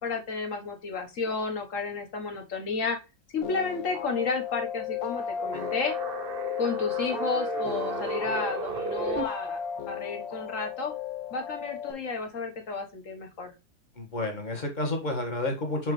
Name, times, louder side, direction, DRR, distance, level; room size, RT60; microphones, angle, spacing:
voice 1, 0.0-3.0 3.3-5.9 6.6-9.6 9.9-10.9 11.3-13.5, left 4 dB, 45° left, 4 dB, 1.6 m, -32 dB
sound 1, 3.4-11.9, left 9 dB, 80° left, 1.7 m, -34 dB
sound 2, 5.4-9.2, right 5 dB, 50° right, 0.7 m, -35 dB
voice 2, 14.0-15.9, left 2 dB, 25° left, 2 dB, 1.8 m, -30 dB
5.8 x 5.5 x 3.2 m, 0.27 s
omnidirectional pair, 2.0 m